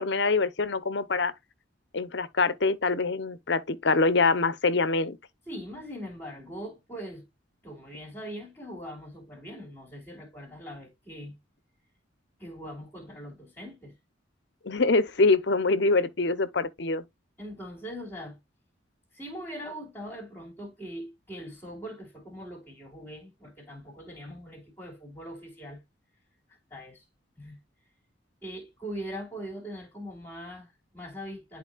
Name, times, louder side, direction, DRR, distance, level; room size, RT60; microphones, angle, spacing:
voice 1, 0.0-1.3 1.9-5.2 14.6-17.0, left 3 dB, 60° left, 0.7 m, -24 dB
voice 2, 5.5-7.3 7.6-11.4 12.4-13.9 17.4-18.4 19.1-25.8 26.7-27.0 27.4-27.6 28.4-31.6, equal, 10° left, 2.3 m, -41 dB
11.0 x 4.2 x 2.3 m
head